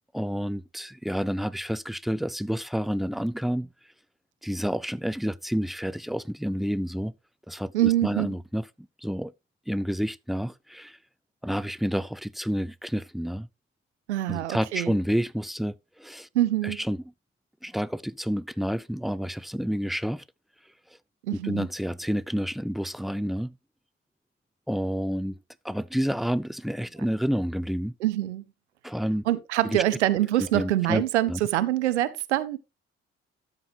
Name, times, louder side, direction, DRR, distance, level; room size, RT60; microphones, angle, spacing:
voice 1, 0.1-3.7 4.4-7.1 7.5-8.6 9.0-9.3 9.7-11.0 11.4-13.5 14.3-16.3 16.6-17.0 17.6-20.2 21.3-23.5 24.7-25.4 25.6-27.9 28.8-29.2 29.6-29.8 30.4-31.4, equal, ahead, 0.4 m, -29 dB
voice 2, 7.7-8.3 14.1-14.9 16.3-16.8 21.3-21.7 28.0-28.4 29.3-32.6, right 14 dB, 80° right, 0.6 m, -25 dB
12.5 x 7.9 x 2.7 m
figure-of-eight pair, 40°, 34 cm